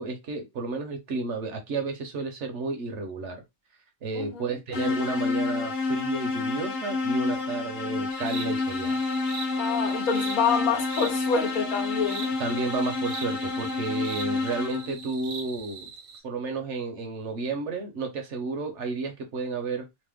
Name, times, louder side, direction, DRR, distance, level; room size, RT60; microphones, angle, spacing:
voice 1, 0.0-3.4 4.0-9.0 12.4-15.9 16.2-19.9, right 3 dB, 60° right, 0.9 m, -32 dB
voice 2, 4.1-4.5 9.5-12.4, left 6 dB, 75° left, 1.2 m, -27 dB
sound 1, 4.7-15.1, left 3 dB, 40° left, 0.8 m, -29 dB
sound 2, 8.1-16.2, right 4 dB, 80° right, 1.1 m, -41 dB
3.1 x 2.1 x 3.4 m
omnidirectional pair, 1.5 m